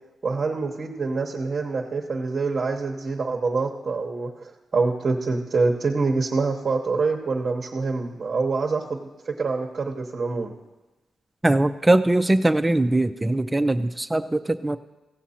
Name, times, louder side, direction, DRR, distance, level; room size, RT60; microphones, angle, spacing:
voice 1, 0.2-10.5, right 4 dB, 35° right, 1 dB, 0.9 m, -26 dB
voice 2, 11.4-14.8, right 2 dB, 10° right, 10 dB, 0.4 m, -21 dB
16.0 x 7.4 x 4.3 m, 1.1 s
wide cardioid pair, 140°, 0 cm